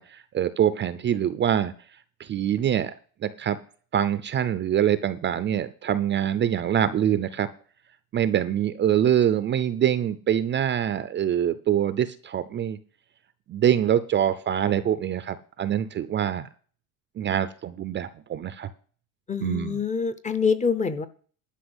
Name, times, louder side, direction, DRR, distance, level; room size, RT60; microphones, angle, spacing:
voice 1, 0.0-1.7 2.2-2.9 3.2-3.6 3.9-7.5 8.1-12.8 13.5-16.5 17.2-18.7 19.4-19.8, right 10 dB, 25° right, 13 dB, 0.5 m, -24 dB
voice 2, 19.3-21.1, left 5 dB, 15° left, 13 dB, 0.7 m, -25 dB
12.0 x 5.9 x 7.9 m, 0.42 s
cardioid pair, 150°, 44 cm